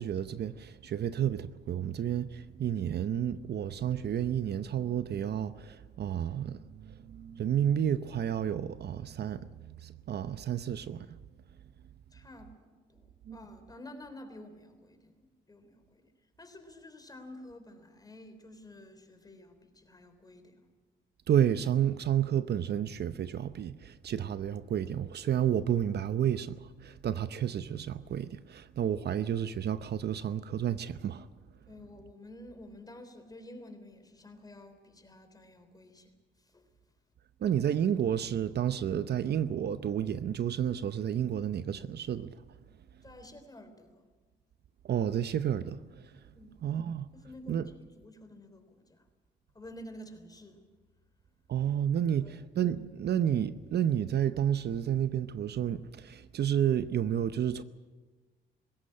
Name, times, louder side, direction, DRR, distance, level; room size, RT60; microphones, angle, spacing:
voice 1, 0.0-11.2 13.3-13.4 21.3-31.3 37.4-42.4 44.8-46.1 46.6-47.1 47.5-47.6 51.5-57.6, right 9 dB, 55° right, 0.8 m, -31 dB
voice 2, 12.1-16.1 16.4-20.7 31.7-36.7 43.0-44.1 46.3-46.6 47.1-49.0 49.5-50.6 52.2-52.3, left 1 dB, 20° left, 3.6 m, -50 dB
20.0 x 16.5 x 8.8 m
cardioid pair, 90°, 20 cm